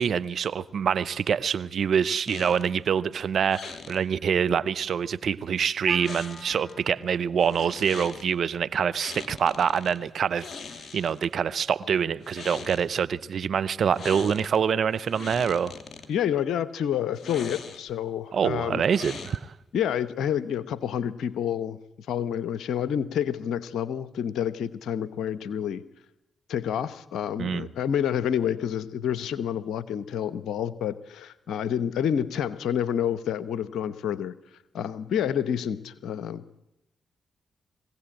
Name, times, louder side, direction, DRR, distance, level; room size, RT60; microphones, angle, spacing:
voice 1, 0.0-10.5 10.9-15.7 18.3-19.5 27.4-27.7, right 7 dB, 65° right, 15 dB, 0.7 m, -25 dB
sound 1, 2.3-2.8 3.5-4.0 6.0-6.7 7.4-8.3 8.9-10.0 10.3-11.3 12.1-12.9 13.9-14.6 14.9-16.1 17.1-18.0 18.9-19.6, left 5 dB, 55° left, 2.4 m, -41 dB
Wind instrument woodwind instrument, 5.8-10.1, left 1 dB, 10° left, 2.0 m, -47 dB
voice 2, 16.1-18.8 19.7-25.8 26.5-34.3 34.7-36.6, left 9 dB, 75° left, 15 dB, 0.9 m, -28 dB
21.5 x 16.5 x 8.9 m, 0.90 s
hypercardioid pair, 40°, 0 cm